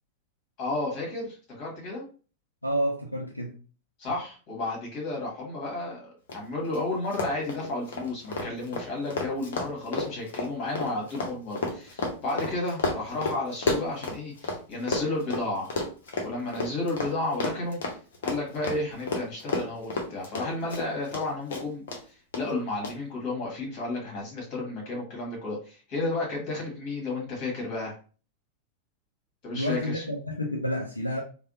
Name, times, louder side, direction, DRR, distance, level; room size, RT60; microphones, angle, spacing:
voice 1, 0.6-2.0 4.0-15.7 16.2-17.8 18.2-21.8 22.3-27.9 29.4-30.0, left 2 dB, 40° left, 1.6 m, -32 dB
voice 2, 2.6-3.5 29.5-31.2, equal, 85° left, 0.4 m, -29 dB
Run, 6.3-6.4 6.6-6.8 7.1-14.6 14.9-21.2 21.5-22.0 22.3-22.4 22.8-22.9, left 3 dB, 60° left, 0.8 m, -31 dB
3.3 x 2.2 x 2.6 m
figure-of-eight pair, 90°, 0 cm